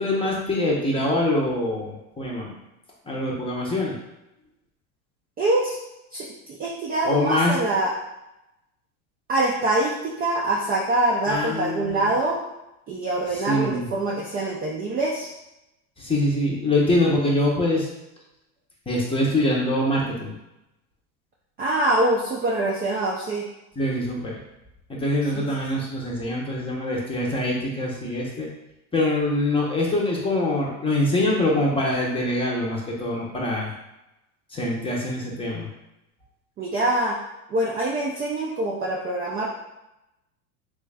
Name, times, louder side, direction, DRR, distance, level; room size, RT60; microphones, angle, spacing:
voice 1, 0.0-2.5 3.1-4.0 7.0-7.6 11.3-12.1 13.5-13.9 16.0-17.9 18.9-20.3 23.8-24.4 24.9-28.5 28.9-33.7 34.5-35.7, left 1 dB, 10° left, -3 dB, 0.7 m, -24 dB
voice 2, 5.4-5.8 6.1-7.9 9.3-12.4 12.9-15.3 21.6-23.5 25.3-25.5 36.6-37.2 37.5-39.5, right 2 dB, 20° right, -4 dB, 0.4 m, -24 dB
3.3 x 2.5 x 3.3 m, 0.92 s
supercardioid pair, 115°, 45 cm